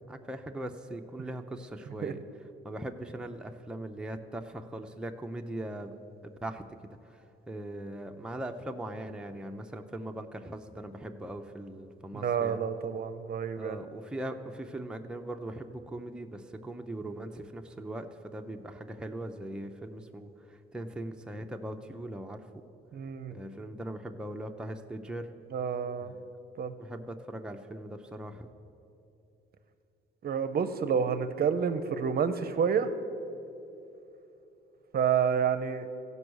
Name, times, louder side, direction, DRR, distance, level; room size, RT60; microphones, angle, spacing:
voice 1, 0.0-5.9 6.2-12.7 13.6-22.4 23.3-25.3 26.0-26.2 26.8-28.5, right 1 dB, 5° right, 4 dB, 0.6 m, -40 dB
voice 2, 12.2-13.8 22.9-23.3 25.5-26.1 26.6-26.7 30.2-32.9 34.9-35.9, right 7 dB, 50° right, 9 dB, 0.6 m, -29 dB
15.5 x 5.4 x 6.3 m, 3.0 s
cardioid pair, 90°, 20 cm